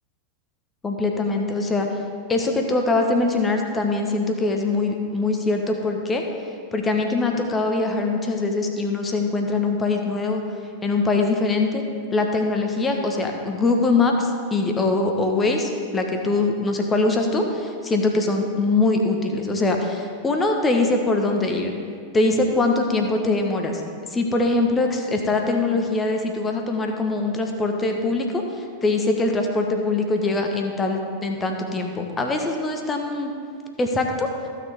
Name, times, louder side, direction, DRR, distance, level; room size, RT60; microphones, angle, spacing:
voice 1, 0.8-1.9 2.3-6.2 6.7-10.4 10.8-11.8 12.1-21.7 22.1-23.8 24.1-33.3 33.8-34.3, left 3 dB, 15° left, 3 dB, 1.2 m, -22 dB
14.5 x 6.7 x 3.6 m, 2.2 s
figure-of-eight pair, 90°, 0 cm